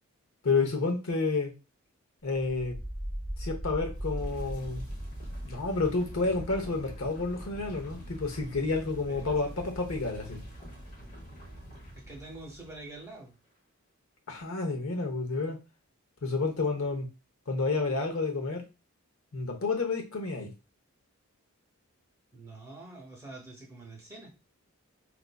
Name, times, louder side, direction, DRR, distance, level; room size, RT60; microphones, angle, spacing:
voice 1, 0.4-1.5 2.2-2.8 3.4-4.8 5.4-10.4 14.3-15.6 16.2-17.1 17.5-18.6 19.3-20.5, left 3 dB, 65° left, 3 dB, 0.9 m, -30 dB
sound 1, 2.3-13.0, equal, 35° left, 1.0 m, -41 dB
voice 2, 9.1-9.6 11.9-13.4 22.3-24.3, right 2 dB, 15° right, 0 dB, 0.9 m, -46 dB
4.5 x 2.5 x 2.2 m, 0.28 s
head